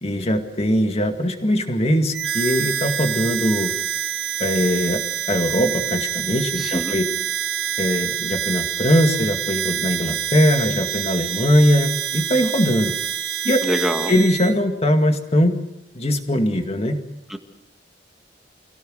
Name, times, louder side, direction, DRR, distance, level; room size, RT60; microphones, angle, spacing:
voice 1, 0.0-3.7 4.4-5.0 5.3-7.0 7.8-12.9 13.4-13.6 14.1-15.6 15.9-17.0, equal, 35° left, 5 dB, 2.2 m, -20 dB
Harmonica, 2.1-14.5, right 9 dB, 65° right, 1.3 m, -26 dB
voice 2, 6.6-7.0 13.6-14.1 17.3-17.4, equal, ahead, 4 dB, 1.9 m, -25 dB
26.5 x 17.0 x 6.5 m, 0.91 s
head